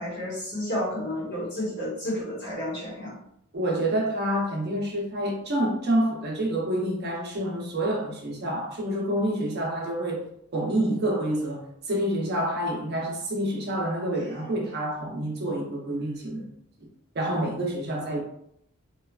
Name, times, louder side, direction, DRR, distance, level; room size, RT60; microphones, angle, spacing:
voice 1, 0.0-3.2, left 1 dB, 55° left, 1.1 m, -31 dB
voice 2, 3.5-16.5 17.1-18.2, right 1 dB, 50° right, 0.7 m, -28 dB
2.9 x 2.3 x 2.3 m
head